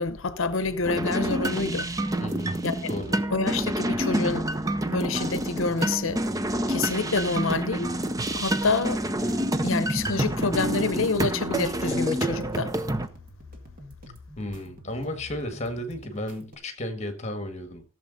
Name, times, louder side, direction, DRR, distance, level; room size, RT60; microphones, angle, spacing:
voice 1, 0.0-1.9 2.6-2.7 3.3-4.5 4.9-6.2 6.7-7.9 8.4-9.0 9.6-12.7, left 4 dB, 70° left, 0.8 m, -27 dB
sound 1, 0.5-16.5, left 1 dB, 40° right, 2.0 m, -47 dB
sound 2, 0.8-13.1, right 1 dB, 15° right, 0.6 m, -28 dB
voice 2, 2.2-2.5 2.9-3.2 14.4-17.8, left 1 dB, 30° left, 1.5 m, -33 dB
15.0 x 7.1 x 3.9 m
head